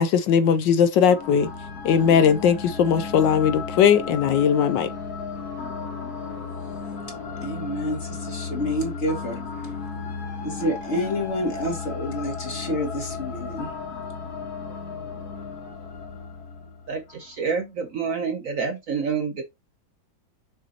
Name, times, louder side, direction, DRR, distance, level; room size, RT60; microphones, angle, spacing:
voice 1, 0.0-1.5 1.8-4.9, left 7 dB, 75° left, 1.3 m, -19 dB
sound 1, 1.1-17.3, left 5 dB, 55° left, 2.0 m, -34 dB
voice 2, 7.4-9.7 10.4-13.7, left 1 dB, 35° left, 2.3 m, -28 dB
voice 3, 16.9-19.4, right 5 dB, 55° right, 1.0 m, -28 dB
6.5 x 6.2 x 2.8 m
omnidirectional pair, 2.1 m